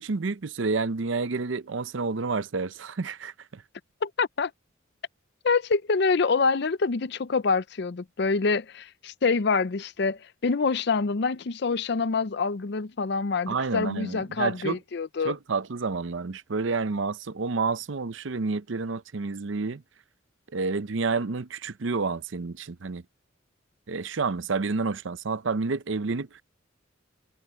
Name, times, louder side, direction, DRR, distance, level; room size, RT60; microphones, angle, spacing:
voice 1, 0.0-3.6 13.5-14.8 15.2-19.8 20.5-23.0 23.9-26.3, right 4 dB, 70° right, 0.6 m, -29 dB
voice 2, 4.0-4.5 5.4-15.3, left 4 dB, 55° left, 0.5 m, -26 dB
head